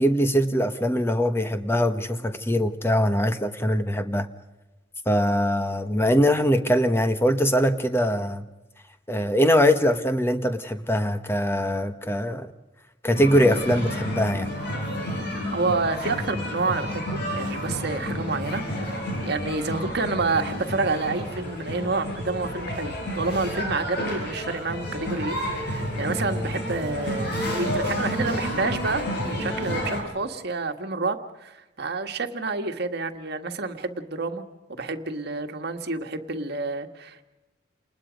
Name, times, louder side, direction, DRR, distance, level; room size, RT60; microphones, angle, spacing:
voice 1, 0.0-4.3 5.1-8.4 9.1-12.5 13.0-14.5, equal, 15° left, 1.2 m, -22 dB
sound 1, 13.1-30.0, equal, 60° left, 7.3 m, -30 dB
voice 2, 15.5-34.4 34.7-37.2, right 3 dB, 60° right, 1.7 m, -29 dB
29.0 x 20.5 x 5.2 m
head